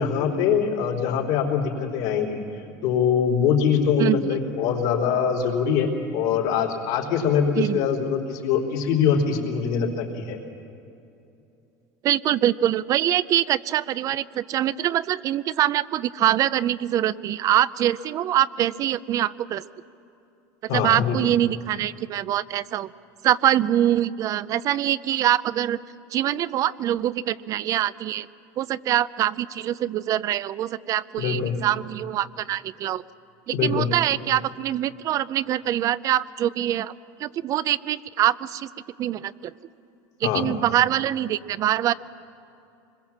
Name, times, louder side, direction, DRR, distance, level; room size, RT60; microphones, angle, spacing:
voice 1, 0.0-2.4 2.8-10.4 20.7-21.2 31.2-31.5 33.5-33.9 40.2-40.5, left 7 dB, 75° left, -1 dB, 4.0 m, -23 dB
voice 2, 12.0-19.6 20.7-22.9 23.2-25.8 26.1-28.3 28.6-33.0 33.5-36.9 37.2-38.7 39.0-39.5 40.2-41.9, right 12 dB, 45° right, 18 dB, 0.5 m, -24 dB
25.0 x 21.5 x 7.3 m, 2.7 s
supercardioid pair, 125°, 8 cm